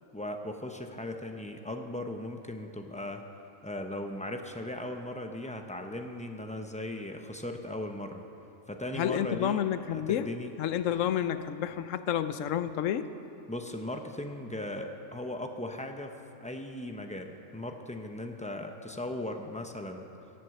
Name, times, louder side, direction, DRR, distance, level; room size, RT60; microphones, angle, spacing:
voice 1, 0.1-3.2 3.6-8.2 8.7-9.6 9.9-10.5 13.5-20.1, left 1 dB, 10° left, 4 dB, 0.4 m, -38 dB
voice 2, 8.9-10.3 10.6-13.1, left 10 dB, 70° left, 12 dB, 0.9 m, -30 dB
17.5 x 8.0 x 7.5 m, 2.9 s
omnidirectional pair, 1.5 m